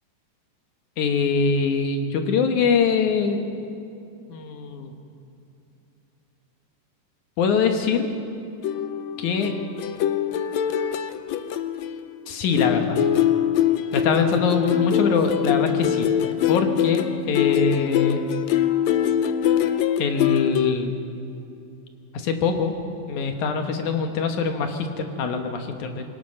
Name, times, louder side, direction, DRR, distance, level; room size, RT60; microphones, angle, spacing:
voice 1, 1.0-3.4 4.3-4.9 7.4-8.1 9.2-9.5 12.3-13.0 13.9-16.1 16.5-18.2 20.0-21.0 22.1-22.7 23.1-26.0, left 5 dB, 65° left, 5 dB, 2.6 m, -23 dB
sound 1, 8.6-12.3 12.6-20.7, left 10 dB, 85° left, 1.6 m, -23 dB
22.5 x 18.5 x 6.5 m, 2.7 s
omnidirectional pair, 3.9 m